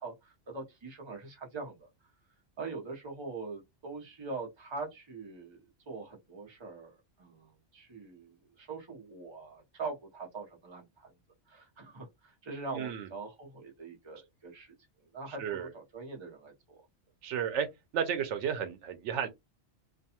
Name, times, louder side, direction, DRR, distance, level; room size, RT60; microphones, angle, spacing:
voice 1, 0.0-1.9 2.6-11.1 11.5-14.8 15.1-16.5, right 3 dB, 25° right, 0.7 m, -43 dB
voice 2, 12.7-13.1 15.4-15.7 17.2-17.7 17.9-19.3, right 8 dB, 85° right, 0.9 m, -32 dB
2.5 x 2.3 x 2.8 m
omnidirectional pair, 1.2 m